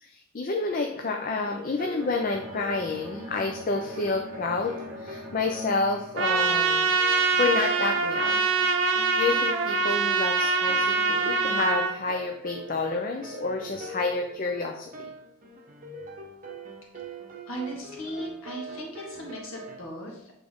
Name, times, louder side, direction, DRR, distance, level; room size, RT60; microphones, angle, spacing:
voice 1, 0.0-6.9 7.3-8.4 9.2-14.9, left 3 dB, 40° left, 3 dB, 0.5 m, -29 dB
sound 1, 0.6-19.8, right 1 dB, 40° right, 0.9 m, -43 dB
Bowed string instrument, 2.0-6.9, equal, 5° right, 1.3 m, -42 dB
Trumpet, 6.1-11.9, right 4 dB, 60° right, 0.6 m, -24 dB
voice 2, 17.5-20.3, equal, 75° left, -1 dB, 1.6 m, -37 dB
8.0 x 3.7 x 3.6 m, 0.75 s
head